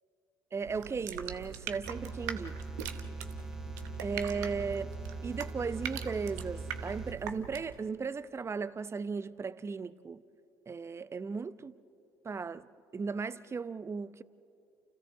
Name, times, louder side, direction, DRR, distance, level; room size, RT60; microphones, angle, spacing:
voice 1, 0.5-2.6 4.0-4.9 5.2-10.2 10.7-11.7 12.2-12.7 12.9-14.2, right 5 dB, 30° right, 0.8 m, -36 dB
sound 1, 0.6-7.8, right 9 dB, 80° right, 1.0 m, -42 dB
sound 2, 1.8-7.1, right 2 dB, 5° right, 1.2 m, -42 dB
29.5 x 29.0 x 3.7 m
hypercardioid pair, 55°, 9 cm